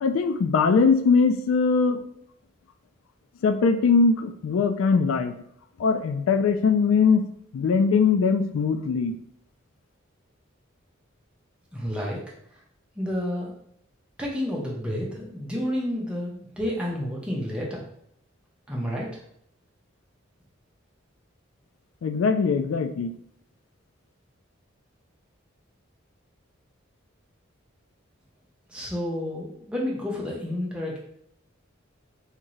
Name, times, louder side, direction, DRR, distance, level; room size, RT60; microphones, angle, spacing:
voice 1, 0.0-2.0 3.4-5.3 5.8-7.2 7.5-9.2 22.0-23.1, left 5 dB, 80° left, 8 dB, 0.3 m, -21 dB
voice 2, 11.7-12.2 13.0-13.5 14.2-17.8 18.7-19.1 28.7-31.0, left 1 dB, 5° right, -4 dB, 0.7 m, -30 dB
3.6 x 2.7 x 3.1 m, 0.68 s
head